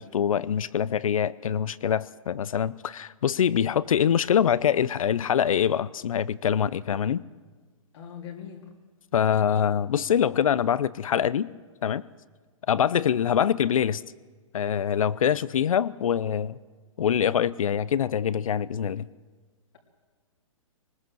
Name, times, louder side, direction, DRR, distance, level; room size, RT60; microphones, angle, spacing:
voice 1, 0.0-7.2 9.1-11.5 11.8-12.0 12.7-14.0 14.5-16.5 17.0-19.1, left 8 dB, 80° left, 20 dB, 0.7 m, -24 dB
voice 2, 7.9-8.7 13.0-13.2, left 8 dB, 55° left, 0 dB, 3.1 m, -41 dB
22.0 x 19.5 x 7.7 m, 1.4 s
hypercardioid pair, 145°, 17 cm